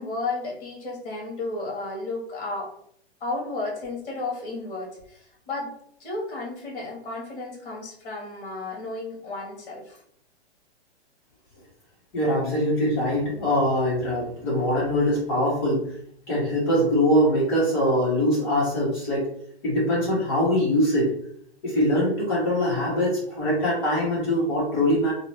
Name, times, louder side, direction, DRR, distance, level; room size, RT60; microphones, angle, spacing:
voice 1, 0.0-2.7 3.2-5.7 6.0-10.0, left 2 dB, 55° left, -2 dB, 1.2 m, -33 dB
voice 2, 12.1-15.8 16.3-19.3 19.6-21.1 21.6-25.1, equal, 25° left, -7 dB, 0.9 m, -23 dB
2.7 x 2.1 x 3.0 m, 0.66 s
hypercardioid pair, 170°, 33 cm